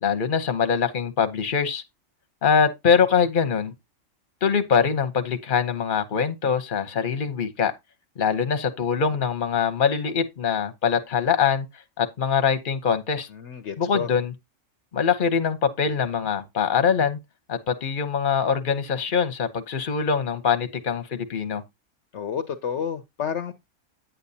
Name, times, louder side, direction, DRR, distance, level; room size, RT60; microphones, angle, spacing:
voice 1, 0.0-1.8 2.4-3.7 4.4-7.7 8.2-11.7 12.0-13.3 13.8-14.3 14.9-17.2 17.5-21.6, left 6 dB, 45° left, 1.1 m, -23 dB
voice 2, 13.3-14.1 22.1-23.5, left 7 dB, 65° left, 1.0 m, -30 dB
9.7 x 8.3 x 2.8 m
omnidirectional pair, 1.3 m